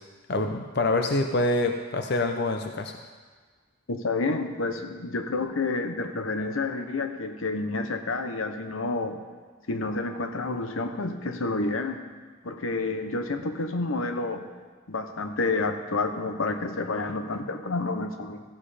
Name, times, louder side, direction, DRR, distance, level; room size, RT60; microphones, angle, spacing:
voice 1, 0.3-2.9, left 2 dB, 55° left, 4 dB, 0.6 m, -26 dB
voice 2, 3.9-9.2 9.7-12.0 12.4-14.5 14.9-18.4, left 3 dB, 85° left, 7 dB, 0.9 m, -29 dB
14.5 x 7.5 x 5.0 m, 1.5 s
head